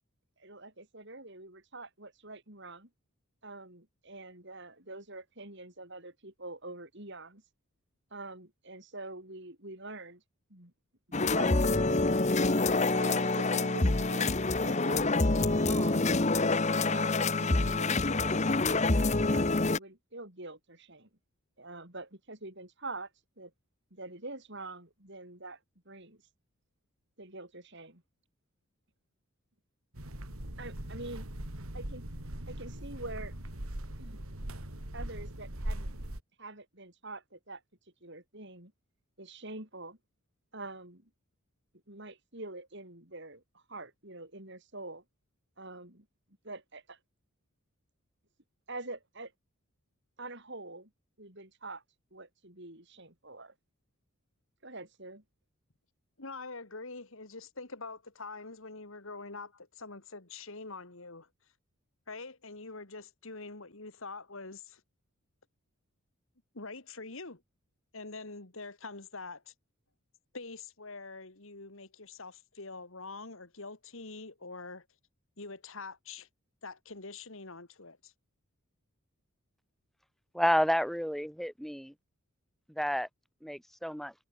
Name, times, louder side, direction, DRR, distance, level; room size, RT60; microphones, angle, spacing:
voice 1, 0.4-2.9 3.4-7.4 8.1-10.2 10.5-10.7 11.2-12.4 12.9-15.1 15.6-16.1 16.9-18.5 19.3-21.1 21.6-23.1 23.4-23.5 23.9-25.6 25.9-26.2 27.2-28.0 30.6-31.3 31.7-32.1 32.5-33.3 34.0-34.2 34.9-35.9 36.4-37.6 38.0-38.7 39.2-40.0 40.5-41.1 41.9-45.0 45.6-46.1 46.4-47.0 48.7-49.3 50.2-50.9 51.2-51.8 52.1-53.5 54.6-55.2, right 2 dB, 50° right, 6.0 m, -45 dB
sound 1, 11.1-19.8, left 3 dB, 30° left, 0.9 m, -27 dB
sound 2, 29.9-36.2, right 1 dB, 75° right, 3.4 m, -40 dB
voice 2, 56.2-61.3 62.1-64.8 66.5-67.4 67.9-69.4 70.3-74.8 75.4-76.3 76.6-78.1, left 3 dB, 65° left, 2.3 m, -45 dB
voice 3, 80.3-81.9 82.7-83.1 83.4-84.1, equal, ahead, 4.1 m, -30 dB
head